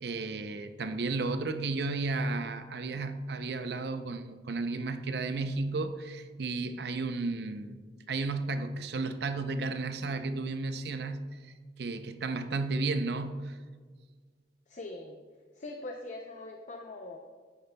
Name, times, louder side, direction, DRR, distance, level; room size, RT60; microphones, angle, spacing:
voice 1, 0.0-7.8 8.1-11.4 11.8-13.6, right 3 dB, 65° right, 9 dB, 0.5 m, -33 dB
voice 2, 14.7-15.2 15.5-17.2, left 2 dB, 45° left, 2 dB, 0.5 m, -42 dB
9.8 x 8.6 x 2.2 m, 1.5 s
head